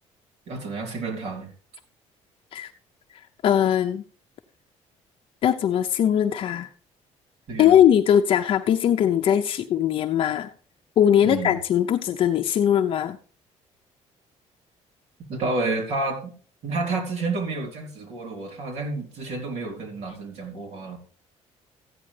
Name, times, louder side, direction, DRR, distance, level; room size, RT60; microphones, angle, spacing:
voice 1, 0.5-1.5 7.5-7.8 11.2-11.6 15.3-16.3 16.6-21.0, right 3 dB, 60° right, 2 dB, 4.2 m, -30 dB
voice 2, 3.1-4.0 5.4-6.7 7.6-10.5 11.0-13.2, left 10 dB, 45° left, 5 dB, 0.6 m, -20 dB
14.5 x 9.8 x 3.3 m, 0.42 s
cardioid pair, 165°, 12 cm